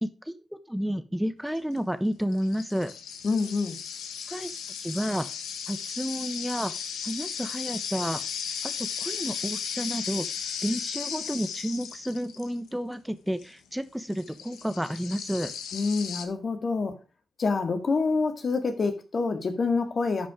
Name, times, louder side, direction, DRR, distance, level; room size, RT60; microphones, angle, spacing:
voice 1, 0.0-2.9 4.3-4.5 4.8-5.3 5.7-6.7 7.0-8.2 8.6-10.3 10.6-15.5, equal, 5° right, 1.1 m, -31 dB
sound 1, 1.6-1.8 2.3-12.7 13.4-13.5 14.1-16.3, left 7 dB, 85° left, 1.3 m, -36 dB
voice 2, 3.2-3.8 15.7-17.0 17.4-20.3, left 4 dB, 55° left, 2.0 m, -27 dB
11.5 x 5.2 x 5.0 m
supercardioid pair, 50°, 0 cm